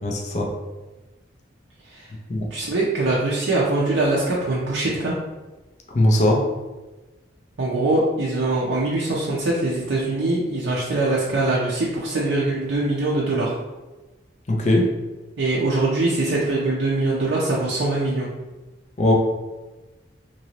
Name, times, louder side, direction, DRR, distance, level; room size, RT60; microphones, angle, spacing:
voice 1, 0.0-0.5 2.3-2.5 5.9-6.5 14.5-14.9 19.0-19.1, left 1 dB, 35° left, 1 dB, 0.4 m, -19 dB
voice 2, 2.5-5.2 7.6-13.6 15.4-18.3, right 2 dB, 75° right, -5 dB, 0.5 m, -22 dB
2.9 x 2.7 x 2.9 m, 1.1 s
head